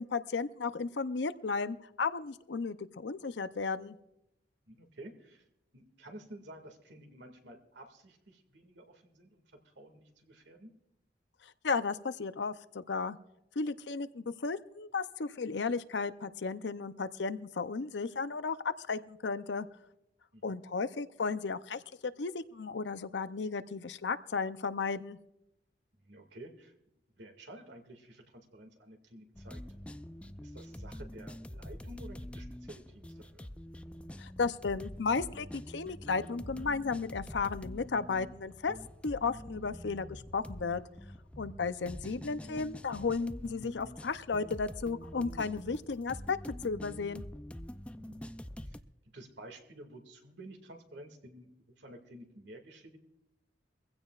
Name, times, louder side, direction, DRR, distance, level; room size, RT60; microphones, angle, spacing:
voice 1, 0.0-4.0 11.4-13.2 13.6-18.6 18.9-19.7 20.4-25.2 34.2-38.7 39.0-40.8 41.4-47.2, left 4 dB, 70° left, 13 dB, 0.6 m, -34 dB
voice 2, 4.7-5.4 5.7-10.7 20.3-20.6 26.0-26.7 27.2-33.5 48.0-48.2 48.7-48.8 49.1-53.0, right 1 dB, 70° right, 5 dB, 2.1 m, -52 dB
sound 1, 29.3-48.8, left 1 dB, 5° left, 0.4 m, -46 dB
22.5 x 16.0 x 2.4 m, 0.86 s
head